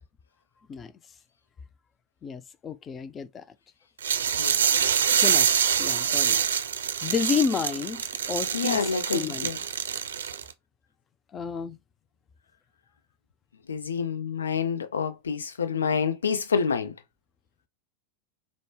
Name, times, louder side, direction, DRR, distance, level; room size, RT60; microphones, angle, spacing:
voice 1, 2.2-3.4 5.2-5.5 5.8-6.4 7.0-9.5 11.3-11.8, left 6 dB, 25° left, 0.4 m, -31 dB
sound 1, 4.0-10.5, right 8 dB, 65° right, 0.5 m, -25 dB
voice 2, 8.5-9.5 13.7-16.9, left 6 dB, 70° left, 0.6 m, -28 dB
5.1 x 2.1 x 3.2 m
figure-of-eight pair, 90°, 0 cm